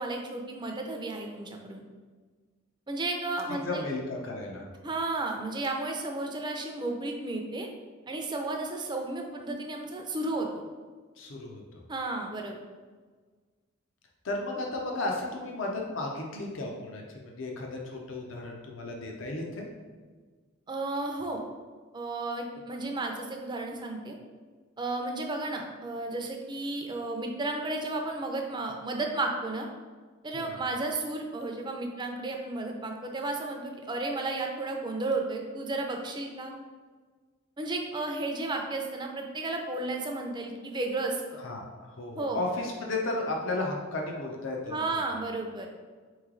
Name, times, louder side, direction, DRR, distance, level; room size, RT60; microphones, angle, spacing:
voice 1, 0.0-1.8 2.9-3.8 4.8-7.7 8.1-10.6 11.9-12.6 20.7-21.4 21.9-24.2 24.8-29.7 30.2-36.5 37.6-41.4 42.1-42.4 44.7-45.7, right 2 dB, 20° right, 2 dB, 0.4 m, -33 dB
voice 2, 3.5-4.6 11.2-11.8 14.2-19.7 30.3-30.6 41.4-44.8, left 2 dB, 65° left, 0 dB, 0.6 m, -34 dB
3.9 x 3.1 x 3.7 m, 1.4 s
head